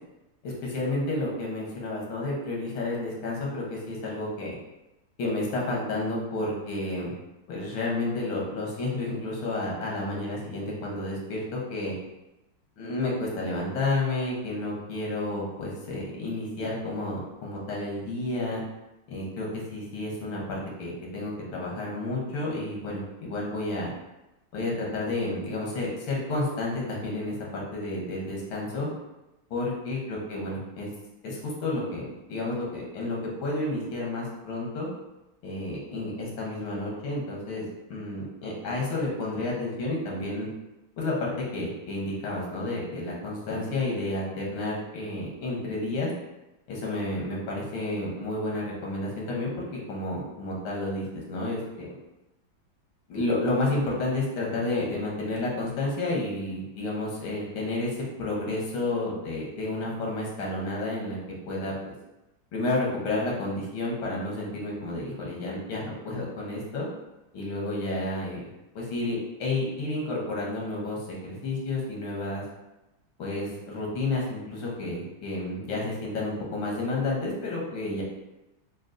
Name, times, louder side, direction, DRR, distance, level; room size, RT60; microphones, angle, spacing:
voice 1, 0.4-4.6 5.2-7.1 7.5-11.9 12.8-18.6 19.1-23.9 24.5-28.9 29.5-30.9 31.2-34.9 35.4-40.5 41.0-46.1 46.7-52.0 53.1-61.2 61.5-61.9 62.5-66.9 67.3-68.5 68.8-72.4 73.2-78.0, left 2 dB, 90° left, -3 dB, 1.8 m, -31 dB
6.1 x 2.3 x 2.5 m, 0.98 s
omnidirectional pair, 2.1 m